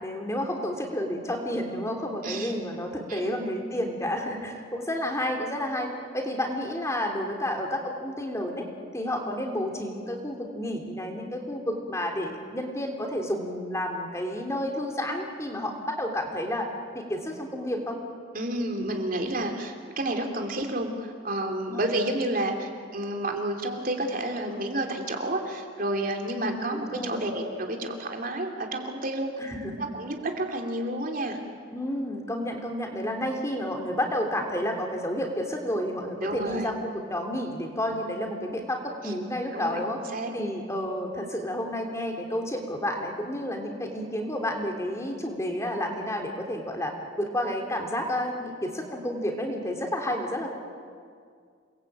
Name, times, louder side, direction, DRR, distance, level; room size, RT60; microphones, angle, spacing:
voice 1, 0.0-8.7 8.9-16.7 16.9-18.0 21.7-21.9 26.3-27.3 29.4-29.9 31.7-40.0 40.3-50.5, left 1 dB, 15° left, 2 dB, 3.2 m, -31 dB
voice 2, 3.1-3.5 18.3-29.3 29.8-31.4 36.2-36.7 39.0-39.1 39.5-39.8 40.1-40.3, right 1 dB, 50° right, 3 dB, 3.3 m, -30 dB
29.0 x 21.0 x 8.8 m, 2.1 s
head